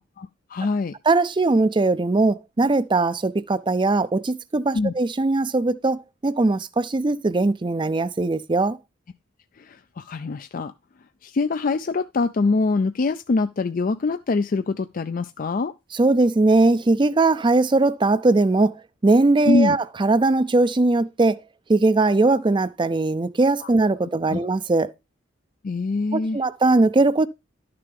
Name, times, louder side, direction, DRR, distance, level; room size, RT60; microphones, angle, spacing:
voice 1, 0.2-0.9 4.7-4.9 9.7-10.7 11.2-15.7 19.5-19.8 23.6-23.7 24.3-24.4 25.6-26.4, left 3 dB, 45° left, 0.4 m, -24 dB
voice 2, 1.0-8.8 15.9-18.7 19.0-21.4 21.7-24.9 26.1-27.3, right 2 dB, 25° right, 0.5 m, -20 dB
12.0 x 6.7 x 3.5 m
head